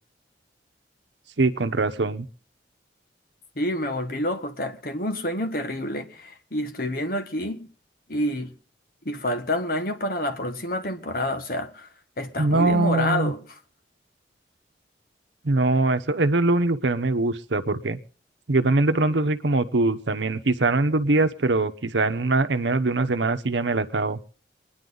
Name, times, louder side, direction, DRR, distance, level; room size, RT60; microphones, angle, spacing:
voice 1, 1.4-2.3 12.4-13.3 15.4-18.0 18.5-24.2, right 2 dB, 80° right, 1.0 m, -22 dB
voice 2, 3.6-7.7 8.1-8.5 9.0-11.9 12.2-13.4, left 1 dB, 50° left, 1.5 m, -28 dB
24.0 x 10.5 x 4.0 m
head